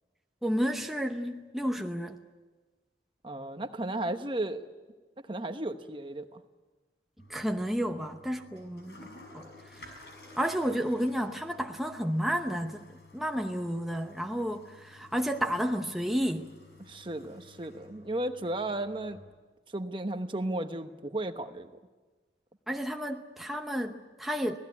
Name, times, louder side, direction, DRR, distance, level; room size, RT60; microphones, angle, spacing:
voice 1, 0.4-2.2 7.3-10.1 10.4-16.5 22.7-24.6, equal, ahead, 0.9 m, -31 dB
voice 2, 3.2-4.7 5.2-6.4 16.8-19.2 19.7-21.7, right 1 dB, 30° right, 1.0 m, -34 dB
Toilet flush, 7.2-19.2, left 2 dB, 65° left, 6.4 m, -54 dB
26.0 x 18.0 x 9.6 m
head